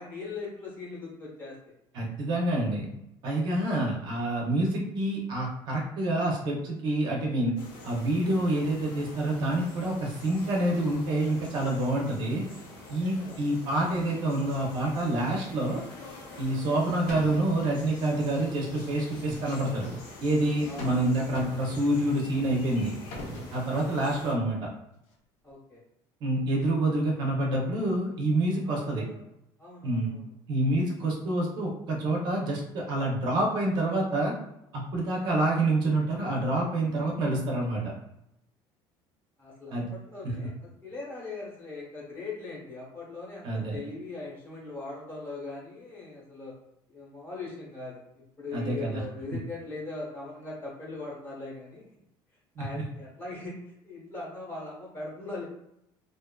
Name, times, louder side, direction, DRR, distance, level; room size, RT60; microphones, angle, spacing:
voice 1, 0.0-1.6 12.8-13.4 20.6-21.1 23.6-23.9 25.4-25.8 28.6-29.3 29.6-30.2 39.4-46.5 46.9-51.8 52.6-55.5, left 3 dB, 20° left, -5 dB, 0.9 m, -40 dB
voice 2, 1.9-2.9 3.2-7.5 7.8-12.4 12.9-15.8 16.4-19.9 20.2-22.9 23.5-24.6 26.2-29.0 29.8-30.1 30.5-34.3 34.7-37.9 39.7-39.9 43.4-43.8 48.5-49.0 52.6-52.8, right 1 dB, 45° right, -1 dB, 0.6 m, -27 dB
sound 1, 7.6-24.3, left 2 dB, 55° left, 0.9 m, -46 dB
sound 2, 16.4-16.8 17.1-17.6 19.1-20.0 20.8-21.1 21.3-22.1 22.8-23.6, left 1 dB, 85° left, 0.6 m, -40 dB
2.4 x 2.3 x 2.2 m, 0.81 s
cardioid pair, 165°, 10 cm